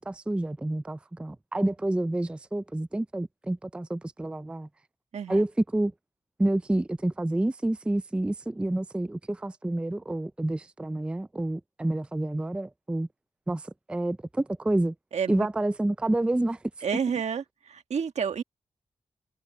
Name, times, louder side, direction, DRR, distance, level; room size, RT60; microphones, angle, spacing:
voice 1, 0.0-4.7 5.3-5.9 6.4-13.1 13.5-14.9 15.3-16.6, right 1 dB, 10° right, 0.4 m, -28 dB
voice 2, 15.1-15.5 16.8-17.4 17.7-18.4, right 7 dB, 75° right, 1.6 m, -29 dB
wide cardioid pair, 140°, 12 cm